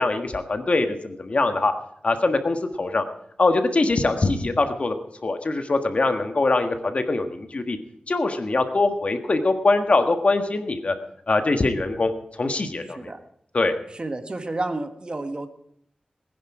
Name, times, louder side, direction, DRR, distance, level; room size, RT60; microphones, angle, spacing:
voice 1, 0.0-1.7 2.0-3.0 3.4-4.9 5.2-7.8 8.1-10.9 11.3-13.1 13.5-13.7, left 3 dB, 55° left, 6 dB, 1.6 m, -23 dB
voice 2, 12.8-13.2 13.9-15.5, right 2 dB, 40° right, 8 dB, 1.4 m, -31 dB
19.5 x 10.5 x 4.9 m, 0.71 s
wide cardioid pair, 75°, 3 cm